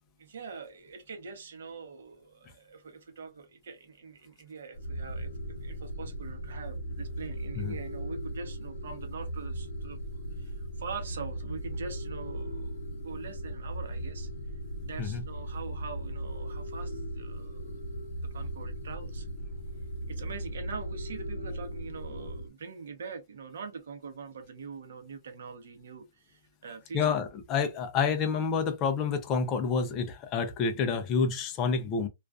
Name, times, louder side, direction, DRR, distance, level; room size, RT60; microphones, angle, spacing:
voice 1, 0.2-10.0 10.4-14.3 14.8-17.7 18.2-19.3 20.1-27.2, right 5 dB, 60° right, 0.8 m, -43 dB
sound 1, 4.7-22.5, right 1 dB, 60° left, 0.6 m, -38 dB
voice 2, 26.9-32.1, left 5 dB, 15° left, 0.4 m, -28 dB
2.4 x 2.2 x 2.3 m
hypercardioid pair, 180°, 0 cm